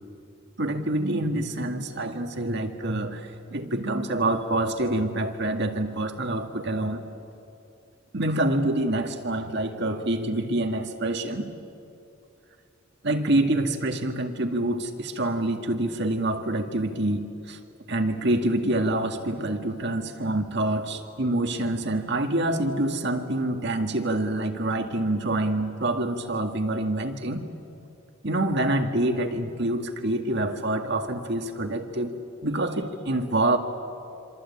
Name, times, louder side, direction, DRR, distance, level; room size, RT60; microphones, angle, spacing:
voice 1, 0.6-7.0 8.1-11.5 13.0-17.6 17.9-27.5 28.2-32.2 32.4-33.6, right 1 dB, 55° right, 5 dB, 2.0 m, -26 dB
27.0 x 26.0 x 8.6 m, 2.6 s
head